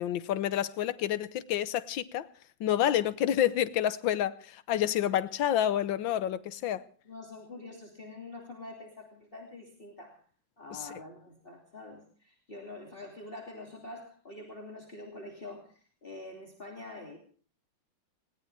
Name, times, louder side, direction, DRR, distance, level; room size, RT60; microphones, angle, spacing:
voice 1, 0.0-2.3 2.6-6.9 10.7-10.8, left 11 dB, 80° left, 1.7 m, -29 dB
voice 2, 7.0-10.2 10.6-17.2, left 2 dB, 30° left, 2.9 m, -46 dB
21.5 x 19.0 x 3.4 m
omnidirectional pair, 2.1 m